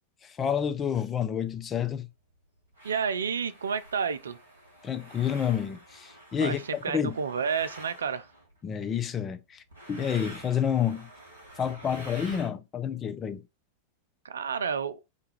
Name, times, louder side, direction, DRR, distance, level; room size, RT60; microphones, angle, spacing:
voice 1, 0.2-2.1 4.8-7.1 8.6-9.6 9.9-11.1 11.6-13.4, left 8 dB, 25° left, 0.4 m, -29 dB
sound 1, 1.5-1.6 2.3-2.4 2.7-8.6 9.7-12.5, right 1 dB, 90° left, 1.8 m, -47 dB
voice 2, 2.8-4.4 6.4-8.3 14.2-15.0, right 6 dB, 70° right, 0.3 m, -30 dB
3.5 x 2.3 x 3.2 m
figure-of-eight pair, 90°, 0 cm